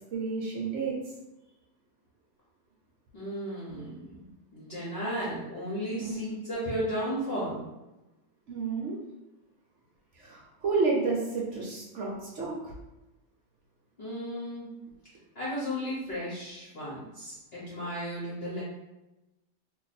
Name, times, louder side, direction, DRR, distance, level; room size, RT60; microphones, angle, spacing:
voice 1, 0.1-1.0 6.0-6.4 8.5-9.0 10.1-12.7, right 4 dB, 60° right, -3 dB, 0.8 m, -31 dB
voice 2, 3.1-4.3 4.5-7.7 14.0-14.7 15.3-18.6, equal, 45° left, -8 dB, 0.9 m, -34 dB
2.6 x 2.5 x 4.1 m, 1.0 s
omnidirectional pair, 1.8 m